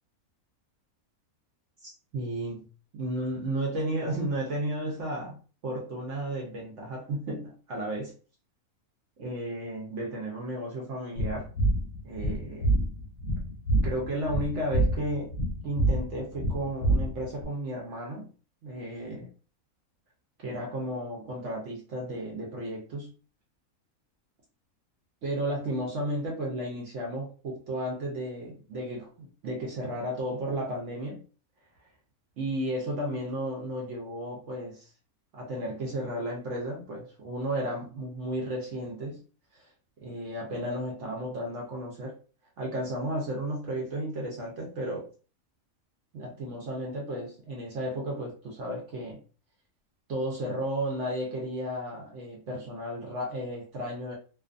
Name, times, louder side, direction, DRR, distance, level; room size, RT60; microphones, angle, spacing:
voice 1, 1.8-2.6 2.9-8.1 9.2-11.5 12.0-12.7 13.8-15.4 15.6-18.3 18.6-19.2 20.4-23.1 25.2-31.2 32.4-34.9 35.3-39.2 39.5-39.7 40.0-42.1 42.6-45.1 46.1-49.2 50.1-54.1, right 1 dB, 65° right, -2 dB, 0.9 m, -33 dB
sound 1, 11.2-17.4, right 1 dB, 65° left, 0.8 m, -27 dB
2.5 x 2.4 x 2.4 m, 0.38 s
omnidirectional pair, 1.5 m